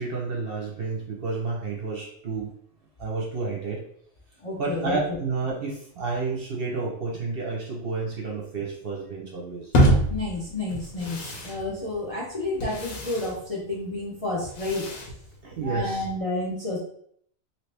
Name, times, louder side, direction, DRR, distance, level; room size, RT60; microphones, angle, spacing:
voice 1, 0.0-2.5 3.0-3.8 4.6-9.7 15.4-16.0, right 3 dB, 50° right, -2 dB, 0.8 m, -30 dB
voice 2, 4.4-5.0 10.1-14.8 15.6-16.8, left 2 dB, 35° left, -4 dB, 0.6 m, -30 dB
sound 1, 9.7-16.0, right 1 dB, 80° left, 1.3 m, -27 dB
2.9 x 2.9 x 3.2 m, 0.64 s
omnidirectional pair, 1.5 m